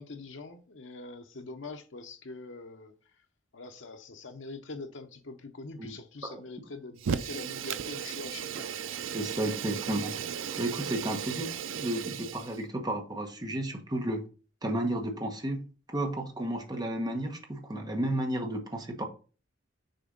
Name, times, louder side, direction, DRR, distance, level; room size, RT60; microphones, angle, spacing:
voice 1, 0.0-2.9 3.5-8.7, left 3 dB, 70° left, 0.9 m, -43 dB
Fire, 7.0-12.6, right 7 dB, 80° right, 0.4 m, -35 dB
voice 2, 9.1-10.1 10.6-11.5 11.8-14.2 14.6-19.0, right 1 dB, 20° right, 1.1 m, -32 dB
6.6 x 4.3 x 3.9 m
head